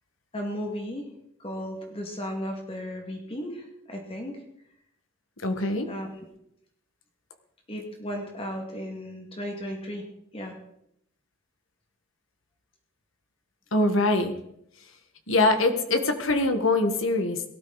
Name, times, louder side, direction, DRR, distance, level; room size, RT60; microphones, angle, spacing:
voice 1, 0.3-1.1 1.4-4.4 5.9-6.1 7.7-10.1 10.3-10.5, equal, 30° left, 2 dB, 2.2 m, -35 dB
voice 2, 5.4-5.9 13.7-14.4 15.3-17.4, left 2 dB, 70° left, 6 dB, 1.8 m, -23 dB
18.0 x 13.0 x 4.2 m, 0.75 s
head